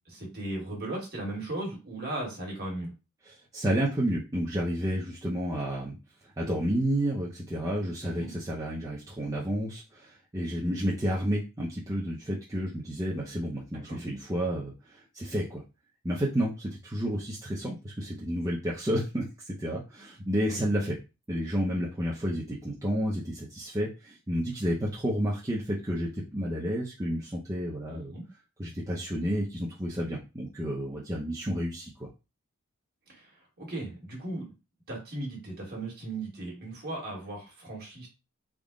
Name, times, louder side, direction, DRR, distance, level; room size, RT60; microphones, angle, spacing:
voice 1, 0.1-2.9 8.0-8.3 13.9-14.0 20.5-20.6 27.9-28.2 33.1-33.3 33.6-34.5 34.9-38.1, right 2 dB, 45° right, -1 dB, 1.5 m, -37 dB
voice 2, 3.3-6.0 6.4-15.6 16.0-21.0 21.3-28.1 28.6-32.1, equal, 15° right, -4 dB, 0.5 m, -31 dB
3.6 x 2.1 x 3.6 m, 0.29 s
head